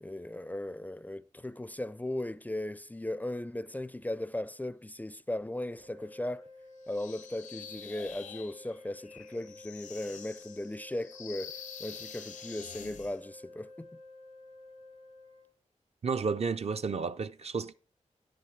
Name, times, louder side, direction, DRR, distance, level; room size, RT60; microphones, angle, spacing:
voice 1, 0.0-6.5 6.9-11.5 11.8-13.9, left 1 dB, 15° left, 0.4 m, -37 dB
sound 1, 5.8-15.5, left 2 dB, 85° right, 4.1 m, -52 dB
sound 2, 6.9-13.2, left 7 dB, 80° left, 0.8 m, -47 dB
voice 2, 16.0-17.7, right 5 dB, 55° right, 0.5 m, -32 dB
10.0 x 8.8 x 4.7 m
wide cardioid pair, 100°, 13 cm